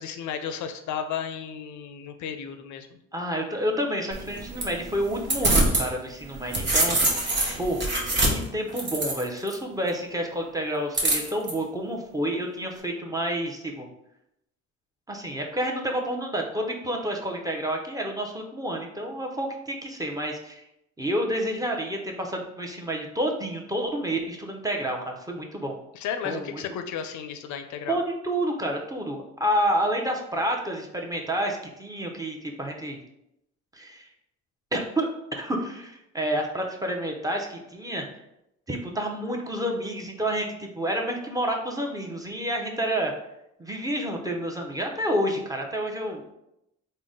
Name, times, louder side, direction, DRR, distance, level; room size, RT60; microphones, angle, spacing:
voice 1, 0.0-2.9 25.9-28.0, left 8 dB, 75° left, 8 dB, 0.5 m, -33 dB
voice 2, 3.1-7.0 7.6-7.8 8.2-13.9 15.1-20.6 21.0-25.7 26.2-26.6 27.9-33.0 33.7-34.1 34.7-38.0 38.7-43.1 43.6-46.3, right 1 dB, 10° right, 1 dB, 0.6 m, -29 dB
sound 1, 4.1-5.9 6.2-9.5 10.9-11.5, right 2 dB, 40° right, 1.0 m, -25 dB
3.8 x 2.1 x 3.6 m, 0.82 s
cardioid pair, 90°, 30 cm